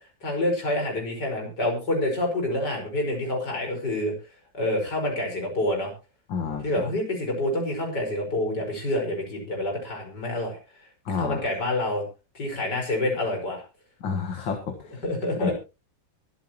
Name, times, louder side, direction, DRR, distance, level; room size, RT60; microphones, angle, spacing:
voice 1, 0.2-4.1 4.5-5.9 6.6-10.6 11.1-12.0 12.3-13.6 15.0-15.5, left 1 dB, 60° left, 2 dB, 5.8 m, -27 dB
voice 2, 6.3-6.9 11.1-11.5 14.0-15.0 15.4-15.5, left 5 dB, 80° left, 3 dB, 2.4 m, -30 dB
23.5 x 9.0 x 3.0 m, 0.29 s
omnidirectional pair, 2.1 m